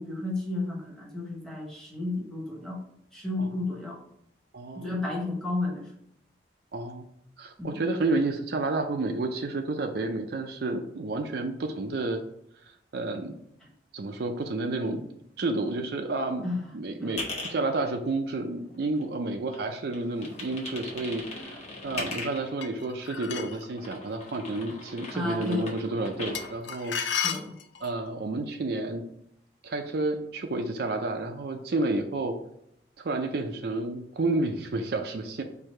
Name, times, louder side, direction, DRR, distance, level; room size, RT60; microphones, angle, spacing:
voice 1, 0.0-2.8 3.1-4.0 4.7-5.9 7.6-7.8 16.4-16.6 17.0-17.2 25.1-25.7 27.2-27.5, left 2 dB, 5° left, -2 dB, 1.0 m, -32 dB
voice 2, 4.5-4.9 6.7-7.1 7.4-12.2 12.9-13.4 13.9-15.0 15.4-16.5 16.7-17.2 17.5-27.0 27.8-29.0 29.6-32.4 33.0-35.4, right 2 dB, 55° right, 5 dB, 0.4 m, -30 dB
sound 1, 17.1-17.5 18.1-19.3 19.5-22.5 23.3-26.5, left 2 dB, 35° left, 1.0 m, -39 dB
sound 2, 22.6-23.7 26.3-28.0, left 7 dB, 80° left, 0.5 m, -32 dB
4.6 x 2.6 x 4.3 m, 0.76 s
head